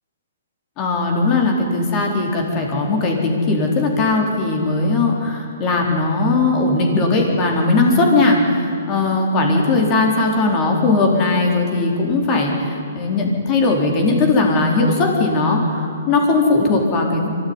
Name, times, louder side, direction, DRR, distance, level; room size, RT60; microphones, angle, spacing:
voice 1, 0.8-12.5 12.9-17.3, left 3 dB, 25° left, 1 dB, 4.0 m, -18 dB
24.0 x 14.0 x 9.8 m, 2.5 s
hypercardioid pair, 155°, 0 cm